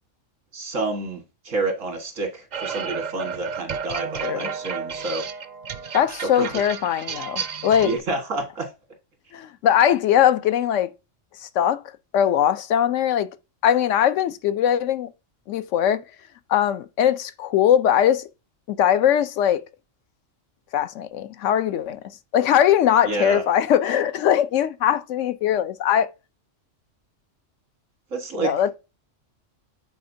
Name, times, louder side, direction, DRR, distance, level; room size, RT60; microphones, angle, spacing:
voice 1, 0.5-5.2 6.4-6.5 7.8-8.7 23.1-23.4 28.1-28.5, right 3 dB, 90° right, 1.9 m, -28 dB
sound 1, 2.5-8.0, right 6 dB, 55° right, 0.5 m, -32 dB
voice 2, 5.9-7.9 9.3-10.9 11.4-11.8 12.1-13.3 13.6-15.1 15.5-16.0 16.5-18.3 18.7-19.6 20.7-22.0 22.3-26.1 28.4-28.7, left 10 dB, 75° left, 0.9 m, -20 dB
8.5 x 4.2 x 2.6 m
omnidirectional pair, 1.3 m